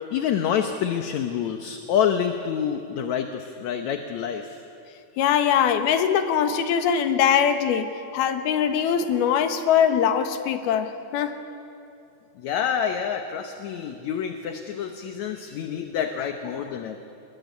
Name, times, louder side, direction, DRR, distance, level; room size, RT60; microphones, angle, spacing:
voice 1, 0.0-4.5 12.4-17.0, left 8 dB, 65° left, 6 dB, 2.0 m, -27 dB
voice 2, 5.2-11.4 16.2-16.6, left 8 dB, 85° left, 7 dB, 3.3 m, -22 dB
27.5 x 21.5 x 9.6 m, 2.7 s
omnidirectional pair, 4.3 m